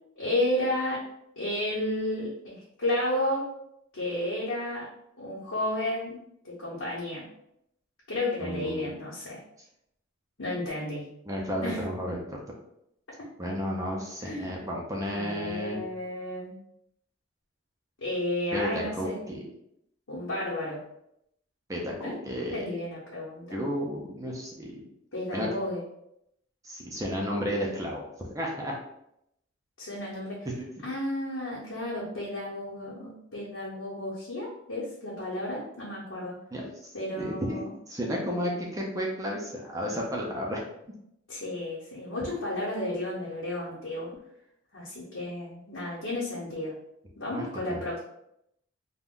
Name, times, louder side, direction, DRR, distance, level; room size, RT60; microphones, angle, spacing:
voice 1, 0.2-1.0 1.4-3.5 3.9-4.8 5.2-6.2 6.4-7.3 8.1-9.4 10.4-11.1 11.6-11.8 14.2-14.6 15.0-16.6 18.0-19.2 20.1-20.8 22.0-22.1 22.5-23.6 25.1-25.8 29.8-30.5 30.8-36.4 36.9-37.7 41.3-44.1 44.7-46.8 47.2-48.0, left 1 dB, 75° left, -8 dB, 0.8 m, -32 dB
voice 2, 8.4-8.9 11.3-12.4 13.4-15.8 18.5-19.4 21.7-22.7 23.5-24.8 25.3-25.5 26.6-28.1 28.3-28.7 30.5-30.6 36.5-36.9 37.2-37.6 37.9-40.6 47.3-47.9, equal, 15° right, -1 dB, 0.4 m, -32 dB
2.5 x 2.2 x 3.6 m, 0.79 s
head